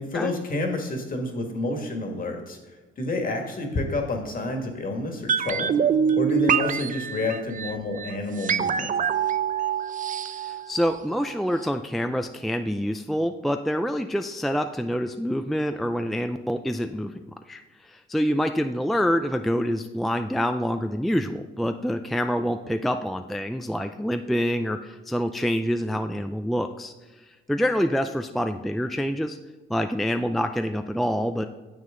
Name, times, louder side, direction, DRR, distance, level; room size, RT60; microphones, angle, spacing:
voice 1, 0.0-2.6 3.0-5.7 6.1-8.9, left 2 dB, 45° left, 3 dB, 1.9 m, -29 dB
sound 1, 5.3-11.3 11.6-11.7, right 8 dB, 40° right, 0.6 m, -25 dB
voice 2, 10.4-17.2 17.5-26.9 27.5-29.4 29.7-31.4, equal, ahead, 7 dB, 0.4 m, -26 dB
9.4 x 7.5 x 3.8 m, 1.2 s
cardioid pair, 90°, 20 cm